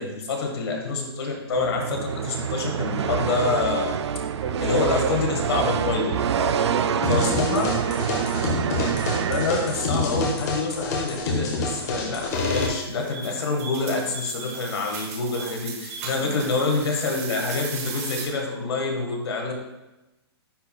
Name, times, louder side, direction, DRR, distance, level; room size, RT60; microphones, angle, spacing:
voice 1, 0.0-3.9 4.6-6.2 7.1-7.6 9.2-19.5, left 3 dB, 65° left, 1 dB, 1.6 m, -26 dB
sound 1, 1.5-10.2, right 8 dB, 85° right, 0.4 m, -27 dB
voice 2, 4.3-5.1 5.5-5.9 6.3-8.6 9.2-9.9 16.2-16.5, right 4 dB, 50° right, 1 dB, 1.4 m, -32 dB
sound 2, 7.0-12.7, left 3 dB, 40° left, 1.1 m, -27 dB
sound 3, 12.3-18.3, right 5 dB, 35° right, 0.9 m, -37 dB
9.6 x 4.6 x 2.3 m, 0.99 s
hypercardioid pair, 170°, 14 cm